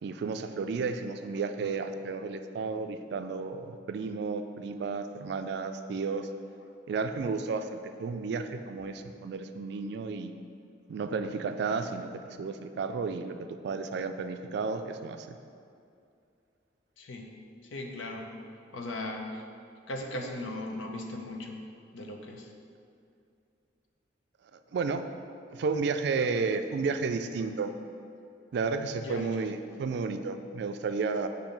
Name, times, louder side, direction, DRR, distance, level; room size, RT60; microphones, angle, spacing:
voice 1, 0.0-6.3 6.9-10.3 10.9-12.1 12.4-13.4 13.6-15.4 24.7-25.0 25.5-27.7 28.5-31.3, right 4 dB, 60° right, 8 dB, 0.3 m, -32 dB
voice 2, 17.0-17.3 17.6-18.3 18.7-19.4 19.9-21.6 21.9-22.5 29.0-29.4, left 1 dB, 90° left, 2 dB, 0.7 m, -38 dB
7.0 x 2.7 x 5.2 m, 2.4 s
head